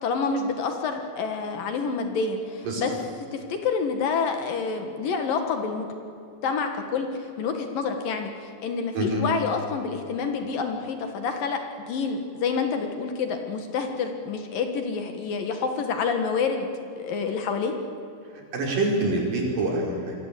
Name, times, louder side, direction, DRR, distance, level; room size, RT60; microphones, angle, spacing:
voice 1, 0.0-2.9 3.3-5.9 6.4-16.7 17.0-17.7, left 5 dB, 65° left, 5 dB, 3.2 m, -28 dB
voice 2, 18.5-20.1, right 2 dB, 55° right, -1 dB, 6.6 m, -25 dB
27.5 x 23.0 x 8.4 m, 2.7 s
omnidirectional pair, 4.6 m